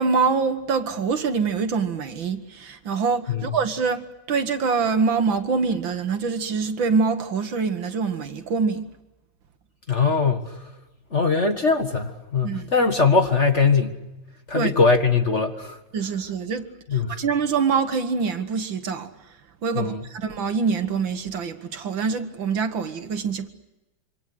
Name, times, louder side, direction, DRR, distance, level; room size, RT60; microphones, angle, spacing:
voice 1, 0.0-8.9 12.4-12.7 14.5-14.7 15.9-19.1 19.6-23.5, right 5 dB, 65° right, 2.1 m, -25 dB
voice 2, 9.9-10.6 11.1-14.0 14.5-15.8 16.9-17.2 19.7-20.1, left 4 dB, 35° left, 1.8 m, -21 dB
26.5 x 26.0 x 6.5 m
omnidirectional pair, 2.4 m